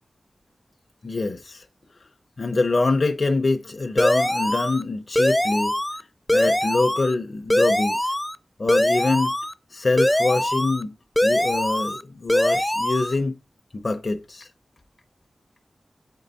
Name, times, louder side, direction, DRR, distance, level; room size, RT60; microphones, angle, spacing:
voice 1, 1.0-1.6 2.4-5.8 6.3-8.1 8.6-9.3 9.7-10.9 11.2-13.4 13.7-14.5, left 3 dB, 50° left, 0.6 m, -24 dB
sound 1, 4.0-4.8 5.2-6.0 6.3-7.1 7.5-8.4 8.7-9.5 10.0-10.8 11.2-12.0 12.3-13.1, left 1 dB, 10° left, 0.5 m, -22 dB
8.2 x 4.5 x 4.0 m
wide cardioid pair, 60°, 0 cm